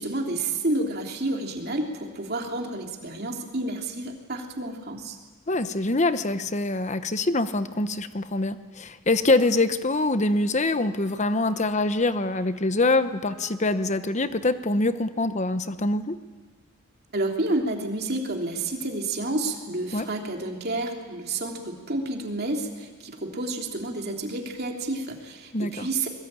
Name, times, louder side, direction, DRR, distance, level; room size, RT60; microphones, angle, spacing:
voice 1, 0.0-5.2 17.1-26.1, right 2 dB, 45° right, 2 dB, 3.1 m, -30 dB
voice 2, 5.5-16.2 19.9-20.1 25.5-25.9, left 2 dB, 35° left, 11 dB, 1.0 m, -24 dB
Wind instrument woodwind instrument, 9.3-16.0, right 2 dB, 90° right, 5.1 m, -52 dB
23.5 x 21.5 x 8.9 m, 1.4 s
head